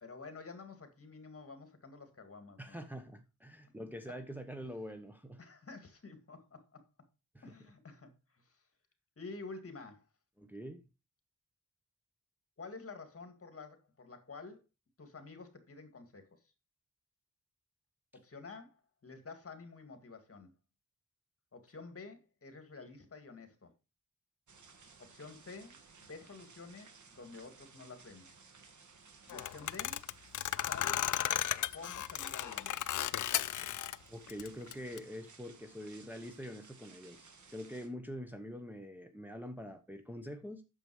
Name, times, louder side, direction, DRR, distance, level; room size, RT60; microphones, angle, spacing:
voice 1, 0.0-2.8 4.1-4.2 5.4-6.8 7.4-8.6 9.2-10.1 12.6-14.6 15.0-16.4 18.1-20.5 21.5-23.7 25.0-28.3 29.3-30.0 30.6-31.2 31.7-32.9, left 4 dB, 45° left, 2.1 m, -50 dB
voice 2, 2.6-5.4 7.3-7.5 10.4-10.8 34.1-40.6, equal, 5° right, 1.0 m, -45 dB
sound 1, 24.5-37.9, right 4 dB, 70° right, 1.6 m, -58 dB
sound 2, 29.3-34.0 34.3-35.0, left 11 dB, 75° left, 0.5 m, -35 dB
8.9 x 6.9 x 4.7 m
wide cardioid pair, 135°, 31 cm